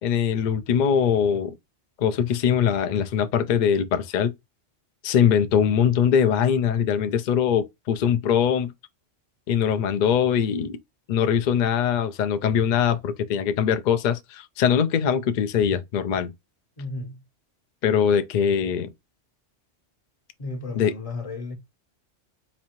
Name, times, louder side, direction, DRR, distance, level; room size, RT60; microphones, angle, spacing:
voice 1, 0.0-1.5 2.0-4.3 5.0-8.7 9.5-10.8 11.1-16.3 17.8-18.9 20.8-20.9, left 8 dB, 65° left, 0.4 m, -22 dB
voice 2, 16.8-17.2 20.4-21.6, left 3 dB, 35° left, 0.8 m, -34 dB
4.1 x 2.6 x 3.0 m
omnidirectional pair, 1.2 m